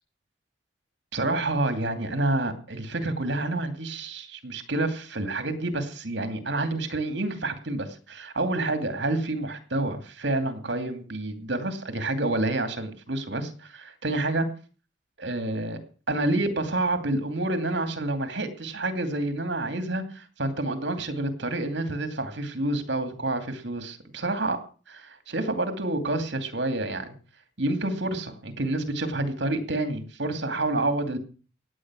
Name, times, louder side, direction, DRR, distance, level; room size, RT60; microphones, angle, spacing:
voice 1, 1.1-14.5 15.2-15.8 16.1-24.6 24.9-27.1 27.6-31.2, right 2 dB, 70° right, 9 dB, 2.6 m, -28 dB
17.0 x 9.2 x 6.3 m, 0.38 s
head